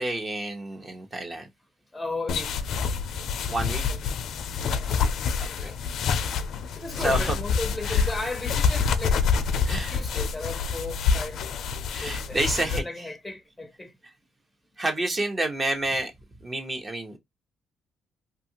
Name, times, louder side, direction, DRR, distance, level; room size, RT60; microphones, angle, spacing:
voice 1, 0.0-1.5 3.5-3.8 5.4-5.8 7.0-7.3 7.9-8.0 9.6-10.0 11.9-13.1 14.8-16.1 16.4-17.2, right 2 dB, 30° right, 0.9 m, -29 dB
voice 2, 1.9-2.7 3.9-4.0 4.6-4.9 5.5-5.8 6.8-9.4 9.9-11.4 12.0-14.0, left 2 dB, 10° left, 0.6 m, -35 dB
Material Rubbing, 2.3-12.8, left 6 dB, 70° left, 0.4 m, -27 dB
2.8 x 2.4 x 2.8 m
cardioid pair, 90°, 0 cm